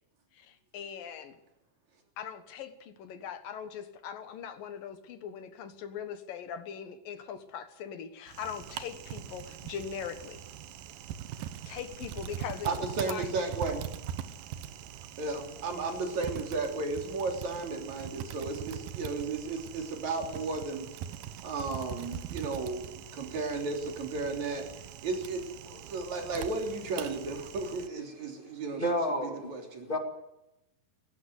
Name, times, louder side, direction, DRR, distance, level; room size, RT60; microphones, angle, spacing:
voice 1, 0.7-1.3 2.2-10.4 11.7-12.7 13.1-13.3, left 8 dB, 70° left, 9 dB, 3.1 m, -40 dB
Typing, 8.3-27.9, right 10 dB, 75° right, 2.6 m, -42 dB
voice 2, 12.6-13.8 15.2-20.9 21.4-29.9, right 3 dB, 50° right, 2 dB, 4.5 m, -34 dB
voice 3, 28.7-29.5 29.9-30.0, equal, 15° left, 3 dB, 2.1 m, -30 dB
18.0 x 18.0 x 8.1 m, 0.89 s
omnidirectional pair, 4.2 m